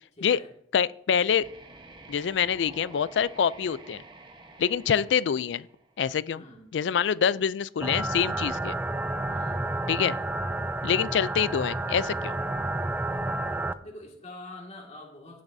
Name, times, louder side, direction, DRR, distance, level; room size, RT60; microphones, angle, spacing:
voice 1, 0.2-0.5 6.3-6.7 9.3-9.6 13.8-15.4, left 1 dB, 40° left, 2.0 m, -45 dB
voice 2, 0.7-1.5 2.1-4.0 4.6-5.7 6.0-6.4 6.7-8.8 9.9-10.2 10.8-12.4, left 7 dB, 80° left, 0.4 m, -25 dB
sound 1, 1.4-6.3, right 2 dB, 25° right, 1.1 m, -49 dB
sound 2, 7.8-13.7, right 2 dB, 10° right, 0.4 m, -30 dB
16.0 x 7.4 x 2.7 m
head